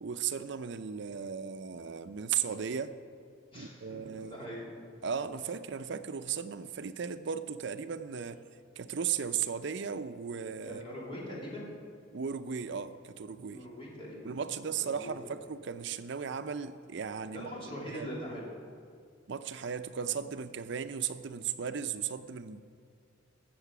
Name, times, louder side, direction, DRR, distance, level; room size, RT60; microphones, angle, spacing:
voice 1, 0.0-3.0 3.5-4.4 5.0-8.4 8.8-10.8 12.1-13.6 14.2-17.5 17.9-18.1 19.3-22.6, right 7 dB, 65° right, 11 dB, 0.5 m, -36 dB
voice 2, 3.5-4.7 10.7-11.7 13.5-15.3 17.3-18.5, equal, 25° left, -4 dB, 2.9 m, -42 dB
15.0 x 7.4 x 6.0 m, 2.2 s
head